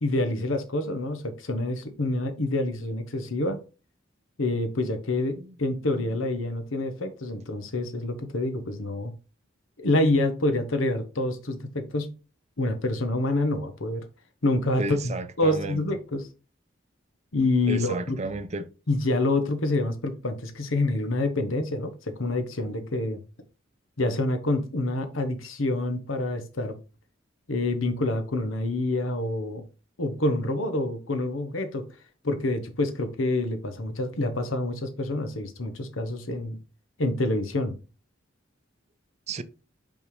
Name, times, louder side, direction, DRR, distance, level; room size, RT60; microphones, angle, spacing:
voice 1, 0.0-3.6 4.4-9.1 9.8-12.2 12.6-14.0 14.4-16.2 17.3-18.2 18.9-23.2 24.0-26.8 27.5-29.6 30.0-31.9 32.2-36.6 37.0-37.7, left 2 dB, 90° left, 1.1 m, -27 dB
voice 2, 14.8-15.8 17.7-18.7 39.3-39.4, right 2 dB, 35° right, 0.5 m, -33 dB
5.4 x 5.3 x 3.2 m
head